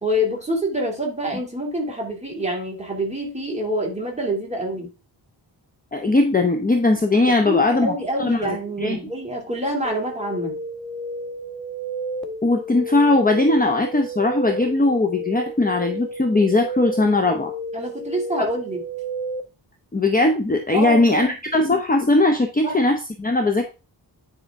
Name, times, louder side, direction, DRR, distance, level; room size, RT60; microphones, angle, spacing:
voice 1, 0.0-4.9 7.3-10.6 17.7-18.8 20.7-21.6 22.6-22.8, equal, 15° right, 0 dB, 2.4 m, -26 dB
voice 2, 5.9-9.0 12.4-17.5 18.4-18.5 19.9-23.7, left 2 dB, 20° left, 4 dB, 0.7 m, -19 dB
sound 1, 9.8-19.4, right 1 dB, ahead, 1.2 m, -32 dB
9.7 x 5.1 x 3.5 m, 0.31 s
wide cardioid pair, 170°, 44 cm